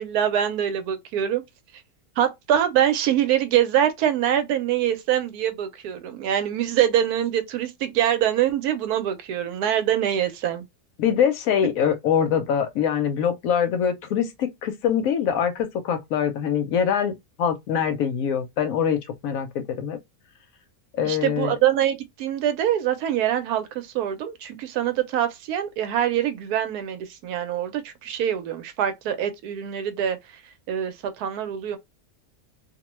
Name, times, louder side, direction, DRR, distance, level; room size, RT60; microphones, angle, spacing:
voice 1, 0.0-1.4 2.2-10.6 21.0-30.2 30.7-31.8, right 10 dB, 85° right, 1.1 m, -24 dB
voice 2, 11.0-20.0 20.9-21.6, left 8 dB, 70° left, 0.9 m, -24 dB
2.6 x 2.2 x 2.9 m
omnidirectional pair, 1.6 m